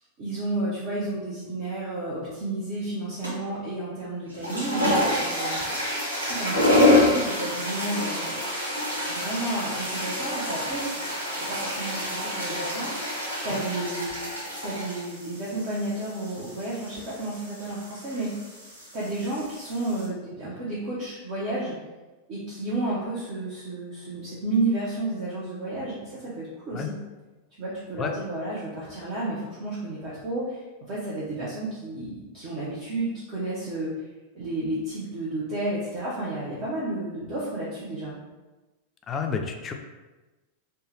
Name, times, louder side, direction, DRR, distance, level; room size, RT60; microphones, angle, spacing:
voice 1, 0.2-5.6 6.3-8.3 9.1-10.9 11.4-14.1 14.6-18.3 18.9-21.8 22.3-26.9 27.6-34.1 34.3-38.2, right 2 dB, 40° right, -7 dB, 0.7 m, -31 dB
sound 1, 3.2-3.6 4.2-20.1, left 1 dB, 80° right, 0.9 m, -28 dB
voice 2, 39.1-39.7, left 6 dB, 25° left, 4 dB, 0.4 m, -29 dB
3.3 x 2.1 x 3.2 m, 1.2 s
figure-of-eight pair, 90°, 0 cm